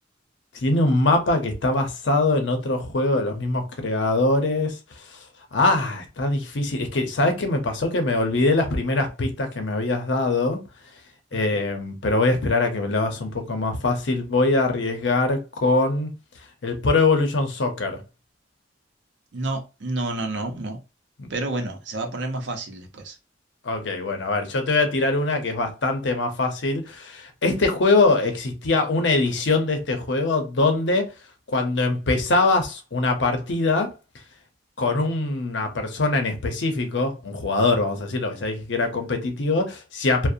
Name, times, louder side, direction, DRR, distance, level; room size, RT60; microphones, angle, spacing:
voice 1, 0.5-5.2 5.5-10.6 11.3-16.1 16.6-18.0 21.2-21.3 23.6-31.1 31.5-33.9 34.8-40.3, left 2 dB, 70° left, 0.7 m, -23 dB
voice 2, 19.3-20.8 21.3-23.2, right 2 dB, 65° right, 0.6 m, -29 dB
2.4 x 2.0 x 2.6 m
head